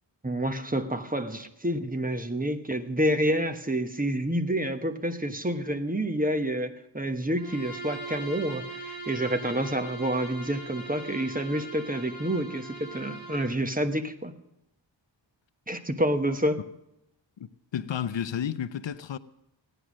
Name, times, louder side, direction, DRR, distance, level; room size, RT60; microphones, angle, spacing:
voice 1, 0.2-14.3 15.7-16.6, right 1 dB, 20° right, 1.1 m, -28 dB
Bowed string instrument, 7.4-13.6, right 3 dB, 55° right, 7.3 m, -40 dB
voice 2, 17.4-19.2, left 9 dB, 75° left, 0.7 m, -32 dB
16.0 x 10.0 x 6.2 m
wide cardioid pair, 85°, 45 cm